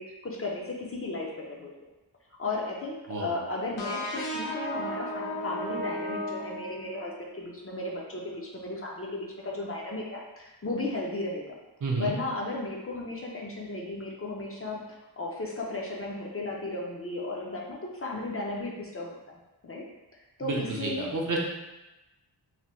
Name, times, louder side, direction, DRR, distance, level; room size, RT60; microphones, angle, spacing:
voice 1, 0.0-1.7 2.4-11.6 12.0-19.3 19.6-19.8 20.4-21.1, left 2 dB, 35° left, -2 dB, 0.5 m, -35 dB
sound 1, 3.8-7.3, left 1 dB, 80° left, 0.8 m, -34 dB
voice 2, 11.8-12.1 20.4-21.4, right 3 dB, 45° right, -1 dB, 0.5 m, -30 dB
3.2 x 2.2 x 2.9 m, 1.0 s
wide cardioid pair, 100°, 43 cm